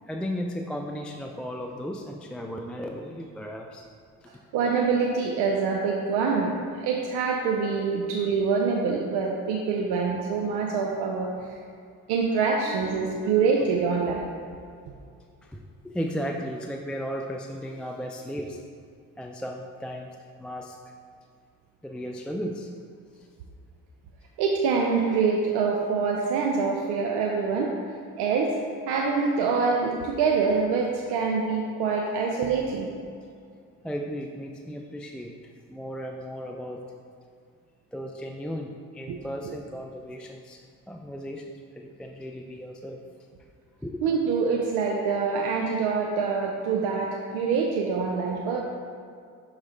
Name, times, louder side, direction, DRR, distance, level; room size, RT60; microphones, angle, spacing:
voice 1, 0.1-3.9 4.2-4.3 12.6-13.5 15.5-18.6 19.2-20.1 20.4-20.8 21.8-22.7 23.1-23.3 33.8-35.3 35.7-36.8 37.9-43.0 43.8-44.0, equal, 5° left, 2 dB, 0.3 m, -35 dB
voice 2, 4.3-11.5 12.1-14.2 24.4-27.7 28.2-28.5 28.9-32.9 39.1-39.2 44.0-48.6, right 5 dB, 90° right, -1 dB, 0.6 m, -25 dB
6.3 x 3.2 x 4.8 m, 2.3 s
supercardioid pair, 60°, 39 cm